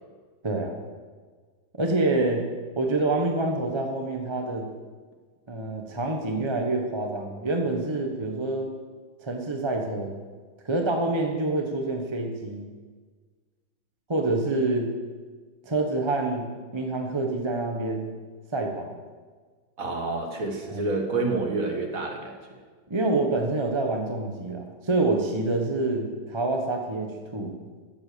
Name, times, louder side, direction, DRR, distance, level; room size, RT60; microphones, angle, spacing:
voice 1, 0.4-0.8 1.8-2.5 2.8-4.7 5.5-8.7 9.2-10.1 10.6-12.7 14.1-14.9 15.6-18.1 18.5-18.9 20.7-20.8 22.9-27.5, right 2 dB, 20° right, 3 dB, 0.9 m, -27 dB
voice 2, 19.8-22.4, right 3 dB, 40° right, 2 dB, 2.0 m, -28 dB
14.0 x 8.1 x 6.9 m, 1.5 s
omnidirectional pair, 2.3 m